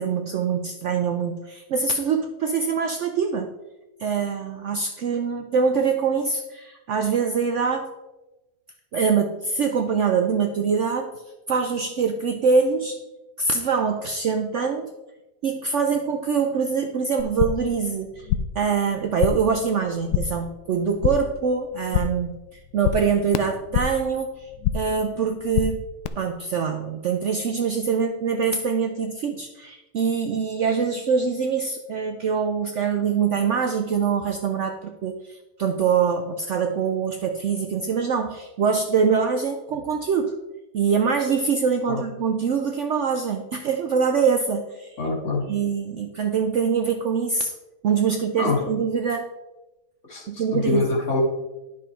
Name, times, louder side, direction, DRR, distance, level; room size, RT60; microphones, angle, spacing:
voice 1, 0.0-3.5 4.0-7.9 8.9-11.2 11.5-13.0 13.4-14.9 15.4-18.3 18.6-24.5 24.7-25.8 26.2-40.3 40.7-45.0 45.5-47.5 47.8-49.2 50.3-50.8, right 6 dB, 65° right, 5 dB, 0.8 m, -24 dB
sound 1, 17.2-17.8 18.0-18.7 18.9-19.6 19.8-20.4 20.7-21.4 21.7-22.3 22.6-24.1 24.4-25.0 25.3-26.1, left 9 dB, 80° left, 1.2 m, -27 dB
voice 2, 45.0-45.5 48.4-48.7 50.1-51.2, left 3 dB, 45° left, -2 dB, 2.1 m, -25 dB
10.0 x 6.2 x 4.4 m, 1.0 s
omnidirectional pair, 1.7 m